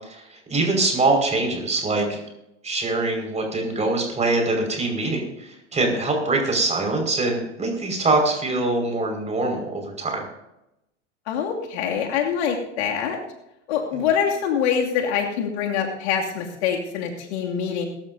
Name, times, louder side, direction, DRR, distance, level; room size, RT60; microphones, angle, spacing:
voice 1, 0.5-2.2 2.6-10.2 13.9-14.0, right 2 dB, 20° right, 2 dB, 5.4 m, -23 dB
voice 2, 11.3-13.2 13.7-17.9, left 7 dB, 65° left, 0 dB, 2.7 m, -24 dB
22.5 x 13.0 x 2.8 m, 0.87 s
figure-of-eight pair, 85°, 36 cm